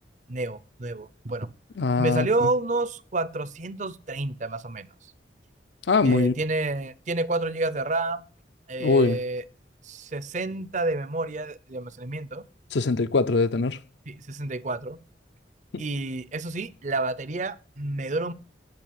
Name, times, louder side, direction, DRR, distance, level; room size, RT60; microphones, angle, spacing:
voice 1, 0.3-1.5 2.0-4.9 6.0-8.2 8.7-9.4 9.8-12.4 14.1-15.0 15.8-18.3, right 2 dB, 40° right, 0.6 m, -29 dB
voice 2, 1.8-2.5 5.9-6.3 8.8-9.2 12.7-13.8 15.7-15.8, left 3 dB, 70° left, 0.6 m, -22 dB
10.5 x 6.2 x 8.6 m
head